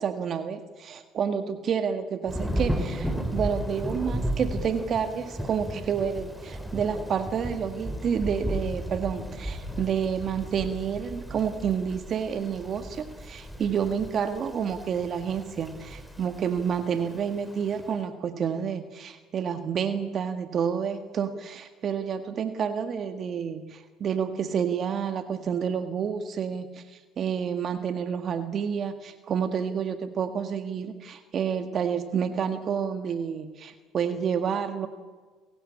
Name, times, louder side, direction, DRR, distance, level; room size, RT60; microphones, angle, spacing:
voice 1, 0.0-34.9, right 7 dB, 45° right, 9 dB, 1.8 m, -29 dB
Thunder / Rain, 2.3-17.9, equal, ahead, 3.4 m, -35 dB
28.5 x 16.5 x 8.8 m, 1.4 s
hypercardioid pair, 75°, 0 cm